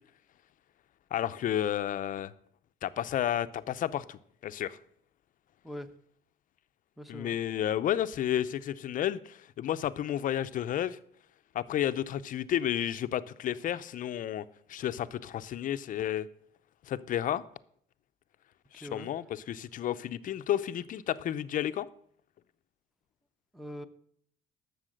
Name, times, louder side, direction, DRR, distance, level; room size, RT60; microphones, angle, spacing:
voice 1, 1.1-2.3 2.8-4.8 7.1-11.0 11.5-16.3 16.9-17.4 18.7-21.9, left 11 dB, 55° left, 0.6 m, -32 dB
voice 2, 7.0-7.4 18.7-19.1 23.5-23.9, equal, ahead, 0.8 m, -42 dB
11.5 x 7.0 x 6.4 m
cardioid pair, 110°, 17 cm